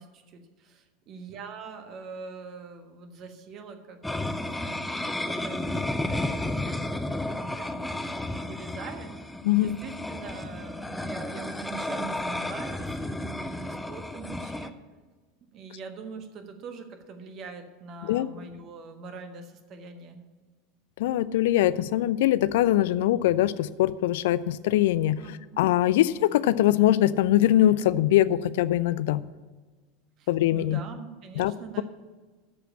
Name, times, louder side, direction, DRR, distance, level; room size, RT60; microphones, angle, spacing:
voice 1, 0.0-14.8 15.5-20.2 25.2-25.6 30.2-31.8, right 5 dB, 40° right, 7 dB, 1.4 m, -43 dB
sound 1, 4.0-14.7, left 1 dB, 5° left, 0.6 m, -32 dB
voice 2, 9.4-9.8 18.0-18.3 21.0-25.3 25.6-29.3 30.3-30.8 31.4-31.8, left 13 dB, 60° left, 16 dB, 0.4 m, -22 dB
13.5 x 5.1 x 8.5 m, 1.4 s
figure-of-eight pair, 80°, 0 cm